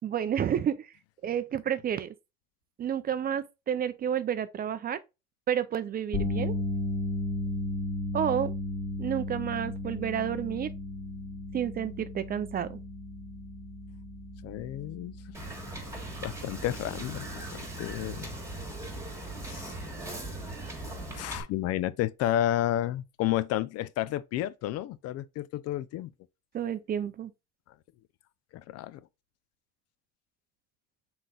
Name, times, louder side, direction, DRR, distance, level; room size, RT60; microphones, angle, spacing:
voice 1, 0.0-0.9 1.2-2.1 2.8-5.0 5.5-6.6 8.1-8.5 9.0-10.7 11.5-12.8 26.5-27.3, right 9 dB, 30° right, 0.4 m, -30 dB
sound 1, 6.1-18.4 18.7-19.0 21.2-21.3, left 2 dB, 20° left, 1.3 m, -35 dB
voice 2, 14.4-15.1 16.2-18.3 19.4-19.7 21.1-26.1 28.5-29.0, left 13 dB, 55° left, 0.4 m, -31 dB
Wind / Boat Water vehicle, 15.3-21.4, right 1 dB, 10° right, 1.6 m, -39 dB
5.8 x 4.0 x 2.3 m
cardioid pair, 115°, 30 cm